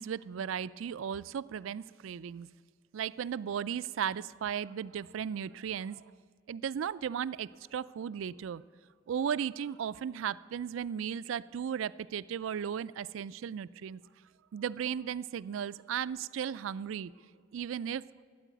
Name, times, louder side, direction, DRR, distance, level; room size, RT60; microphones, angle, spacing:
voice 1, 0.0-2.5 2.9-6.0 6.5-8.6 9.1-14.0 14.5-17.1 17.5-18.0, right 8 dB, 75° right, 17 dB, 0.3 m, -36 dB
13.0 x 8.4 x 9.3 m, 2.1 s
head